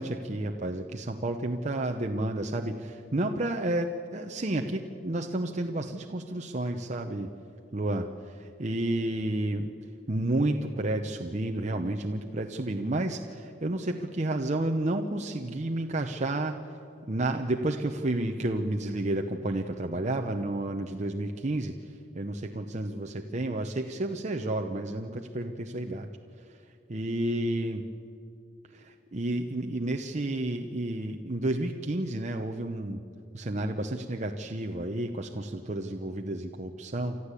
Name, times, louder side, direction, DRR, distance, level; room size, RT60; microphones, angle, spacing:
voice 1, 0.0-7.3 7.7-9.7 10.1-16.6 17.1-21.7 22.1-26.1 26.9-27.8 28.7-33.0 33.3-37.2, right 1 dB, 40° right, 3 dB, 0.9 m, -31 dB
30.0 x 13.5 x 8.3 m, 2.6 s
head